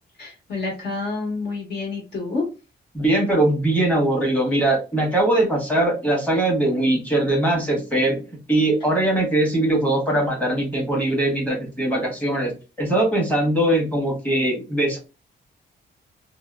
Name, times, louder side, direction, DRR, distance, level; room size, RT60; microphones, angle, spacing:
voice 1, 0.2-2.4, left 3 dB, 65° left, -1 dB, 1.3 m, -28 dB
voice 2, 2.9-8.2 8.5-12.5 12.8-15.0, right 1 dB, 10° left, -1 dB, 0.9 m, -21 dB
2.7 x 2.0 x 2.3 m, 0.30 s
wide cardioid pair, 165°, 19 cm